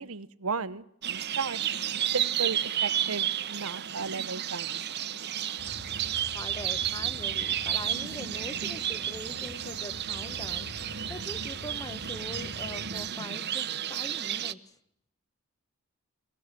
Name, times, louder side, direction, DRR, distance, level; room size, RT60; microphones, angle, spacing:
voice 1, 0.0-1.6 2.1-4.8, right 5 dB, 75° right, 16 dB, 0.9 m, -35 dB
sound 1, 1.0-14.5, right 10 dB, 50° right, 0.9 m, -32 dB
sound 2, 5.6-13.1, left 2 dB, 80° left, 2.5 m, -46 dB
voice 2, 6.3-14.8, left 1 dB, 15° left, 13 dB, 1.1 m, -43 dB
24.5 x 19.0 x 7.4 m, 0.73 s
head